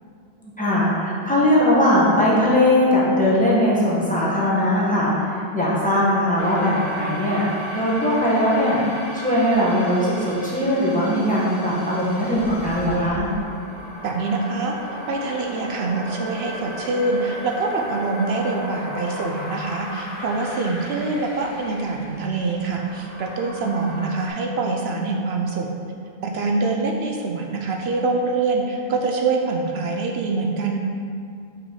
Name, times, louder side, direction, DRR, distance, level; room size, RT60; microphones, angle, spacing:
voice 1, 0.6-13.3, left 1 dB, 5° left, -8 dB, 1.5 m, -20 dB
sound 1, 6.4-24.3, equal, 70° left, 1.4 m, -35 dB
voice 2, 14.0-25.7 26.2-30.8, right 3 dB, 75° right, 1 dB, 0.9 m, -25 dB
5.9 x 5.1 x 4.8 m, 2.3 s
omnidirectional pair, 1.1 m